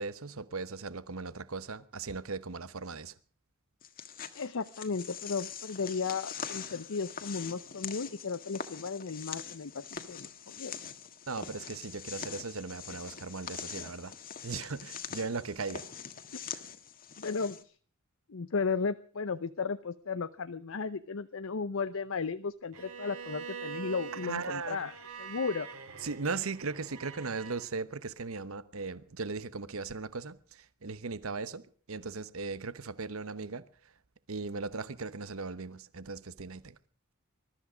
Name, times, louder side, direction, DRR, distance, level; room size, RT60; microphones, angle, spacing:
voice 1, 0.0-3.1 11.3-14.1 14.4-15.8 16.5-16.6 24.2-24.9 26.0-31.6 31.9-33.6 34.3-36.8, right 4 dB, 70° right, 1.0 m, -38 dB
sound 1, 3.8-17.6, left 7 dB, 45° left, 1.5 m, -43 dB
voice 2, 4.3-10.7 16.3-16.4 17.2-17.6 18.3-24.9 25.2-25.7, left 5 dB, 70° left, 0.7 m, -35 dB
Bowed string instrument, 22.7-27.6, right 6 dB, 90° right, 4.3 m, -44 dB
21.0 x 13.0 x 5.1 m
head